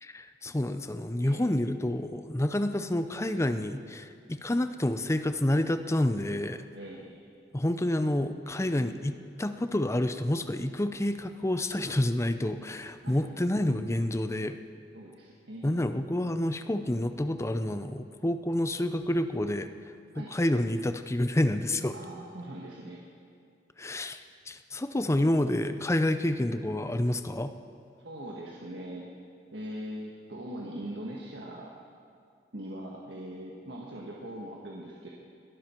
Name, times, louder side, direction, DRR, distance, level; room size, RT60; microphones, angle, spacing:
voice 1, 0.0-6.6 7.5-14.6 15.6-19.7 20.2-21.9 23.8-24.2 24.5-27.5, left 1 dB, 15° left, 9 dB, 0.6 m, -28 dB
voice 2, 1.2-1.5 6.7-7.3 13.0-13.2 14.9-15.8 20.1-20.3 21.9-23.0 28.0-29.1 29.5-31.7 32.5-35.1, right 1 dB, 70° right, -3 dB, 1.7 m, -41 dB
21.5 x 13.0 x 4.5 m, 2.3 s
head